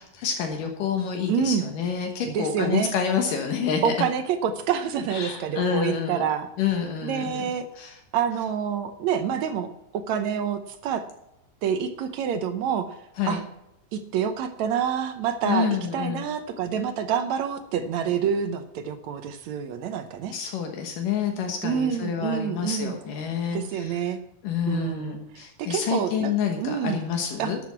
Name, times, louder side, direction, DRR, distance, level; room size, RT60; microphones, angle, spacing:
voice 1, 0.0-3.9 5.1-6.2 6.6-7.4 7.8-8.0 13.2-13.4 15.4-16.2 20.3-24.0 24.4-27.6, left 7 dB, 75° left, 3 dB, 2.9 m, -28 dB
voice 2, 1.3-1.6 2.3-2.9 3.8-6.5 7.0-7.7 8.1-11.1 11.6-12.9 13.3-13.4 13.9-20.3 21.6-22.9 23.5-24.2 24.7-26.3 26.6-27.0 27.4-27.5, right 8 dB, 75° right, 9 dB, 1.8 m, -27 dB
12.0 x 7.9 x 7.0 m, 0.84 s
omnidirectional pair, 3.9 m